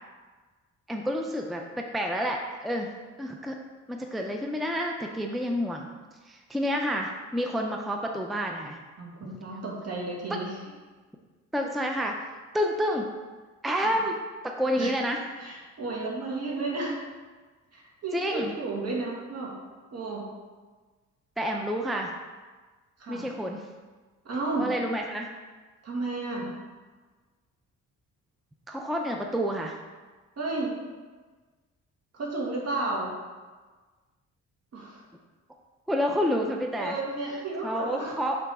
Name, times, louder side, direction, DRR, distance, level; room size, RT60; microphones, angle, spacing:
voice 1, 0.9-2.9 3.2-3.6 3.9-5.9 6.3-8.8 11.5-12.2 12.5-13.1 13.6-14.1 14.4-15.2 18.1-18.5 21.4-22.1 23.1-23.6 24.6-25.3 28.7-29.8 35.9-37.0 37.6-38.4, equal, ahead, 2 dB, 0.5 m, -29 dB
voice 2, 9.0-10.6 13.8-14.0 14.8-14.9 15.4-17.0 17.7-19.5 19.9-20.2 23.0-23.2 24.2-24.7 25.8-26.5 29.0-29.1 30.4-30.7 32.1-33.1 34.7-35.0 36.8-38.1, right 2 dB, 55° right, -3 dB, 1.9 m, -32 dB
5.8 x 3.9 x 4.8 m, 1.4 s
cardioid pair, 90°, 30 cm